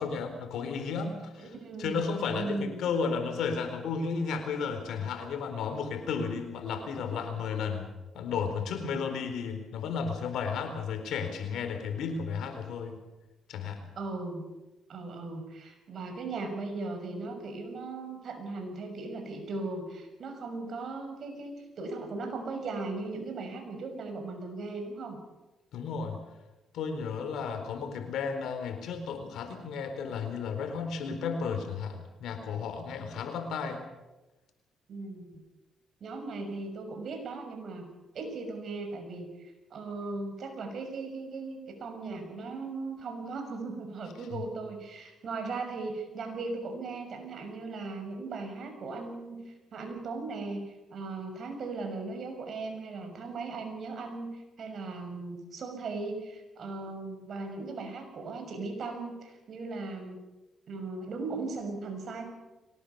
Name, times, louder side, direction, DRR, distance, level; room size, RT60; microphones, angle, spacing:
voice 1, 0.0-1.5 1.8-7.9 8.1-13.0 13.5-13.8 25.7-26.2 26.7-33.8 44.3-44.4, left 5 dB, 80° left, 6 dB, 4.2 m, -33 dB
voice 2, 1.4-2.0 2.3-2.8 14.0-14.4 14.9-25.2 34.9-35.4 36.0-37.9 38.1-50.6 50.9-60.2 60.7-62.2, right 3 dB, 60° right, 5 dB, 6.2 m, -38 dB
23.5 x 19.0 x 7.0 m, 1.1 s
cardioid pair, 85°, 0 cm